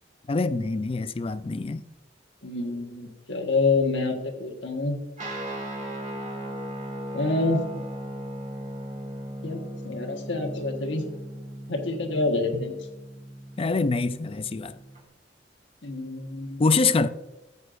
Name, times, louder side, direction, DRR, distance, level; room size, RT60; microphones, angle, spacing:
voice 1, 0.3-1.8 12.5-12.6 13.6-14.8 16.6-17.1, left 3 dB, 30° left, 0.4 m, -25 dB
voice 2, 2.4-5.0 7.1-7.6 9.4-11.0 11.7-12.8 15.8-16.7, left 3 dB, 75° left, 1.4 m, -27 dB
Guitar, 5.2-15.0, right 1 dB, 40° right, 1.8 m, -37 dB
13.5 x 8.4 x 2.6 m
head